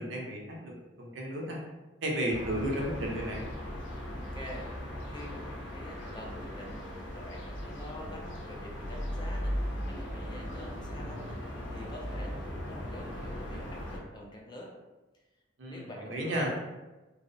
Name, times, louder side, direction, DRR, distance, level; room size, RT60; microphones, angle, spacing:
voice 1, 0.0-1.6 2.0-3.4 15.6-16.5, right 1 dB, 80° right, -1 dB, 0.6 m, -33 dB
sound 1, 2.3-14.0, equal, 75° left, 0.6 m, -38 dB
voice 2, 4.2-4.7 5.0-6.8 7.1-14.7 15.7-16.5, left 1 dB, 25° left, -1 dB, 0.4 m, -46 dB
2.7 x 2.0 x 2.6 m, 1.1 s
head